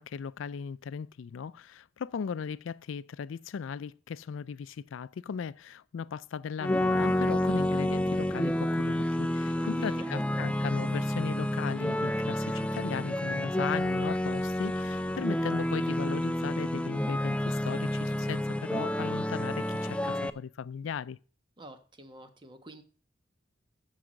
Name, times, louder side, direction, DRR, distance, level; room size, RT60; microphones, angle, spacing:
voice 1, 0.0-21.2, left 6 dB, 80° left, 0.4 m, -37 dB
sound 1, 6.6-20.3, left 1 dB, 5° left, 0.5 m, -29 dB
voice 2, 9.6-10.1 21.6-22.8, right 1 dB, 25° right, 1.2 m, -48 dB
14.0 x 4.9 x 6.3 m
head